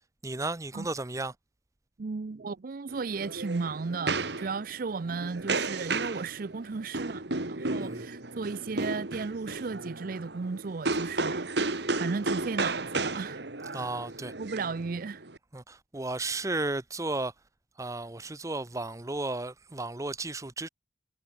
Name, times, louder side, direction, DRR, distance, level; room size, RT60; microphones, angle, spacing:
voice 1, 0.2-1.3 7.8-8.1 13.7-14.3 15.5-17.3 17.8-20.7, right 2 dB, 20° right, 0.8 m, -34 dB
voice 2, 2.0-13.4 14.4-15.3, right 4 dB, 50° right, 0.5 m, -35 dB
sound 1, 2.9-15.4, right 3 dB, 65° right, 2.1 m, -33 dB
head